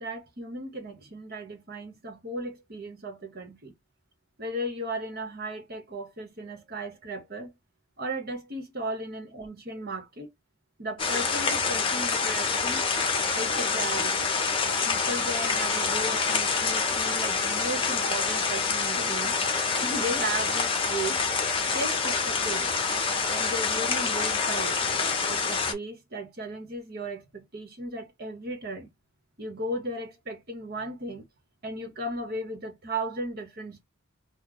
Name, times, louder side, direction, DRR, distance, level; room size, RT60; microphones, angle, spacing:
voice 1, 0.0-3.7 4.4-7.5 8.0-10.3 10.8-12.8 13.4-14.3 14.8-19.4 19.8-21.2 21.7-22.7 23.3-24.8 25.3-28.9 29.4-31.2 31.6-33.8, right 1 dB, 50° right, 1.2 m, -36 dB
sound 1, 11.0-25.7, left 5 dB, 25° left, 0.7 m, -27 dB
3.2 x 2.2 x 3.8 m
head